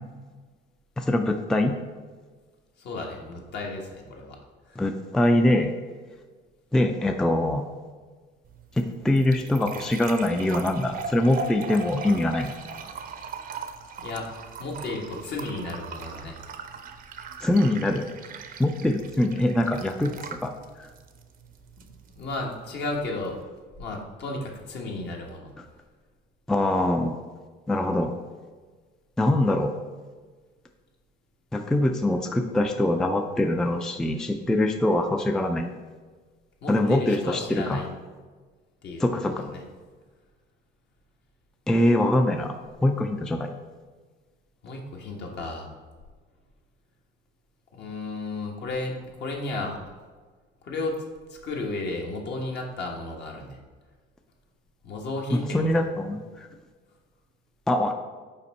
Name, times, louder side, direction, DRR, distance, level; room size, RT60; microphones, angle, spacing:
voice 1, 1.0-1.7 4.8-5.7 6.7-7.7 8.8-12.5 17.4-18.1 18.6-20.5 20.8-20.9 26.5-27.2 27.7-28.1 29.2-29.7 31.5-35.8 36.7-37.8 39.0-39.5 41.7-42.5 42.8-43.5 55.3-56.5 57.7-57.9, left 1 dB, 5° left, 5 dB, 0.3 m, -23 dB
voice 2, 2.8-4.4 4.7-4.8 14.0-16.4 22.2-23.4 23.8-25.5 36.6-37.9 38.8-39.6 44.6-45.7 47.7-49.8 50.6-51.0 51.3-53.6 54.8-55.9, left 2 dB, 55° left, 0 dB, 1.3 m, -33 dB
sound 1, 8.4-23.4, right 5 dB, 45° right, 0.6 m, -40 dB
5.6 x 4.3 x 4.1 m, 1.4 s
cardioid pair, 110°, 20 cm